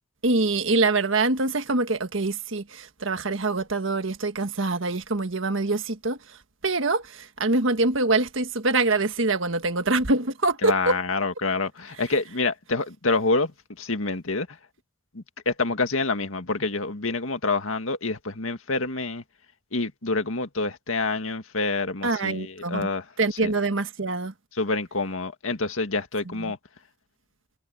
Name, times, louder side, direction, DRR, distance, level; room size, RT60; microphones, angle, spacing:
voice 1, 0.2-6.2 6.6-11.0 22.0-22.9 23.2-24.3 26.2-26.5, right 3 dB, 65° right, 1.5 m, -24 dB
voice 2, 10.6-13.5 13.8-14.5 15.1-19.2 19.7-23.0 23.4-23.5 24.6-26.6, left 3 dB, 85° left, 2.0 m, -27 dB
head